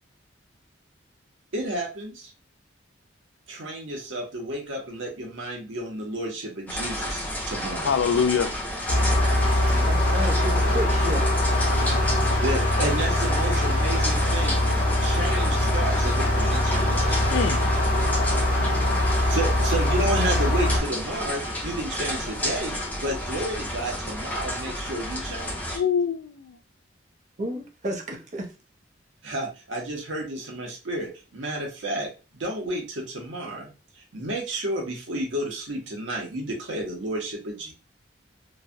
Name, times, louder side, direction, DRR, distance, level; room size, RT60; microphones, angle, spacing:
voice 1, 1.5-2.3 3.5-7.9 12.2-14.6 15.0-17.2 19.2-25.8 29.2-37.7, right 1 dB, 85° right, 0 dB, 1.0 m, -31 dB
sound 1, 6.7-25.8, left 1 dB, 10° left, 0.6 m, -32 dB
voice 2, 7.8-8.6 17.3-17.6 25.7-26.6, left 6 dB, 85° left, 11 dB, 0.3 m, -24 dB
sound 2, 8.9-20.8, left 1 dB, 45° left, 0.8 m, -22 dB
voice 3, 9.7-11.3 27.4-28.5, equal, 40° right, 1 dB, 0.6 m, -32 dB
3.2 x 2.2 x 2.5 m, 0.31 s
head